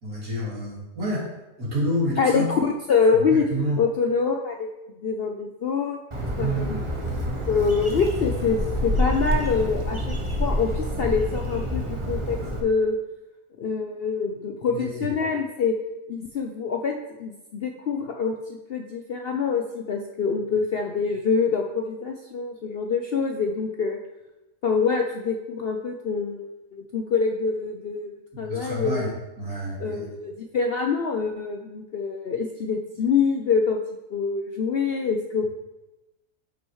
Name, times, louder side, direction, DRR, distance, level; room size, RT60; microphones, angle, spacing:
voice 1, 0.0-1.3 1.6-2.5 3.1-3.8 6.4-6.7 14.6-15.1 28.3-29.1 29.4-30.1, equal, 70° right, -8 dB, 2.9 m, -29 dB
voice 2, 2.2-3.5 3.8-4.7 5.0-6.0 6.4-6.8 7.5-8.6 8.8-10.1 10.4-13.0 13.6-15.7 16.1-18.4 18.7-24.0 24.6-28.1 28.4-29.1 29.8-33.8 34.1-35.5, left 5 dB, 65° left, 3 dB, 0.5 m, -25 dB
Bird, 6.1-12.6, left 1 dB, 25° right, 0.9 m, -27 dB
11.0 x 6.2 x 3.1 m, 1.0 s
omnidirectional pair, 1.6 m